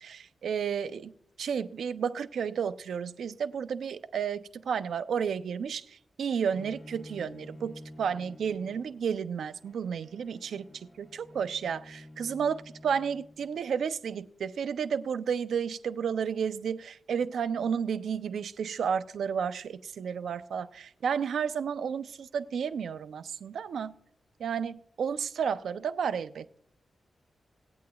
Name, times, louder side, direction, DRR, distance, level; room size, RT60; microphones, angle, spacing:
voice 1, 0.0-1.1 1.4-23.9 24.4-26.5, right 7 dB, 85° right, 12 dB, 0.4 m, -32 dB
Bowed string instrument, 6.5-13.6, left 1 dB, 40° left, 2.6 m, -50 dB
19.0 x 8.5 x 2.3 m, 0.69 s
wide cardioid pair, 105°, 0 cm